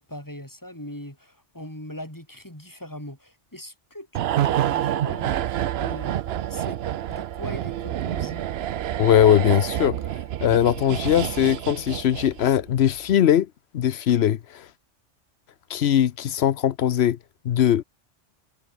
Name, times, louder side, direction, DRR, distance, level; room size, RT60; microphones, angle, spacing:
voice 1, 0.0-6.8 7.1-8.5, left 1 dB, 15° left, 6.2 m, -40 dB
sound 1, 4.1-12.7 13.0-13.1, right 11 dB, 65° right, 0.8 m, -28 dB
voice 2, 9.0-10.0 10.4-13.5 13.7-14.4 15.7-17.2 17.4-17.8, left 10 dB, 65° left, 0.9 m, -20 dB
omnidirectional pair, 1.2 m